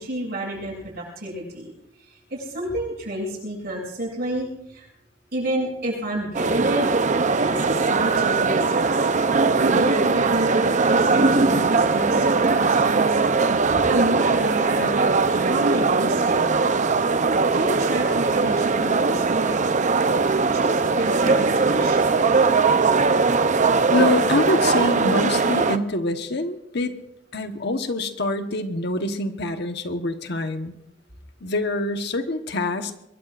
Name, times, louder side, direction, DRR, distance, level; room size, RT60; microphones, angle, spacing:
voice 1, 0.0-1.7 2.3-4.9 5.3-6.8 7.4-9.0 9.6-10.6 10.9-13.2 13.5-16.5 17.5-19.6 20.5-22.2, right 1 dB, 60° right, -2 dB, 7.9 m, -29 dB
sound 1, 6.3-25.8, right 4 dB, 40° right, 0.7 m, -20 dB
voice 2, 23.9-27.0 27.3-30.7 31.4-32.9, left 2 dB, 60° left, 7 dB, 1.2 m, -25 dB
24.0 x 22.5 x 2.5 m, 0.82 s
head